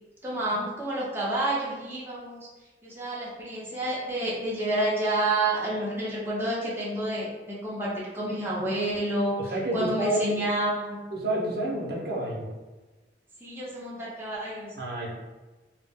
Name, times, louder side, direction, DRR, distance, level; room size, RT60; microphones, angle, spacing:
voice 1, 0.2-2.5 2.8-11.1 13.4-14.7, right 1 dB, 15° right, -7 dB, 0.5 m, -29 dB
voice 2, 9.5-10.2 11.1-12.5 14.8-15.1, right 1 dB, 60° right, -3 dB, 0.5 m, -29 dB
2.2 x 2.0 x 3.3 m, 1.2 s
head